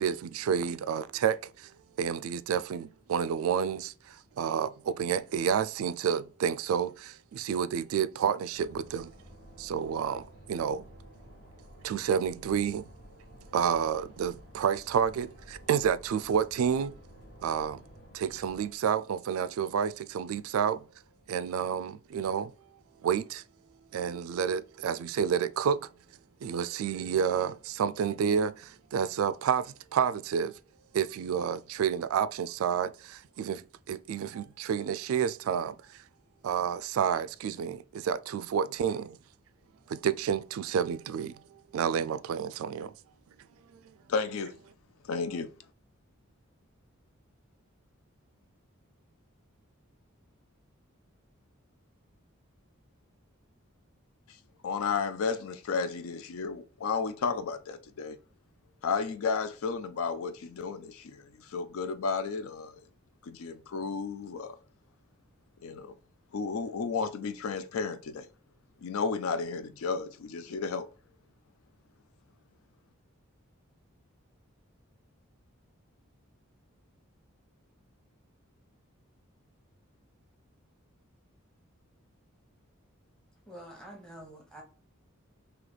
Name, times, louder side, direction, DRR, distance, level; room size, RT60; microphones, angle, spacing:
voice 1, 0.0-1.7 2.0-9.1 9.6-10.9 11.8-12.9 13.5-16.9 17.4-17.8 18.1-20.8 21.3-22.5 23.0-23.4 23.9-25.9 26.4-30.5 30.9-35.7 36.4-39.2 39.9-42.9, right 7 dB, 80° right, 0.3 m, -30 dB
sound 1, 8.5-18.7, equal, 50° left, 1.0 m, -52 dB
voice 2, 44.1-44.5 45.1-45.5 54.6-58.2 58.8-62.7 63.3-64.6 65.6-65.9 66.3-68.3 68.8-70.9, left 5 dB, 80° left, 0.4 m, -32 dB
voice 3, 83.5-84.6, right 1 dB, 5° left, 0.8 m, -47 dB
3.2 x 2.9 x 3.9 m
head